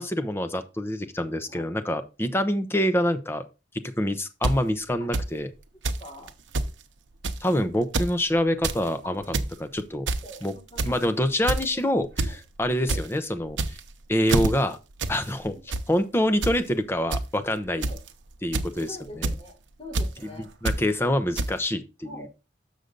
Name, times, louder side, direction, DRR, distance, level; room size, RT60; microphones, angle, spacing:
voice 1, 0.0-3.4 4.0-5.5 7.4-9.2 9.6-10.1 10.4-10.5 10.8-13.6 14.1-14.8 15.1-17.9 18.4-19.3 20.4-22.3, left 1 dB, 15° left, 10 dB, 0.7 m, -26 dB
voice 2, 1.5-2.0 5.0-5.1 6.0-6.3 9.0-9.2 10.2-10.4 10.7-11.2 11.7-11.8 12.2-12.4 12.8-13.0 17.8-18.0 18.9-19.5 19.8-20.5 22.0-22.3, equal, 35° left, -3 dB, 3.2 m, -43 dB
sound 1, 4.4-4.5 5.1-5.2 5.8-6.0 6.3-6.4 6.5-6.7 7.2-7.5 7.8-8.1 8.5-8.8 9.2-9.5 10.1-10.4 10.8-11.0 11.5-11.7 12.2-12.3 12.6-13.0 13.5-13.9 14.3-14.5 15.0-15.2 15.5-15.8 16.4-16.6 17.1-17.2 17.8-18.1 18.5-18.8 19.2-19.4 19.9-20.1 20.7-20.8 21.4-21.5, right 2 dB, 85° right, 0.7 m, -26 dB
6.7 x 6.4 x 3.8 m, 0.29 s
head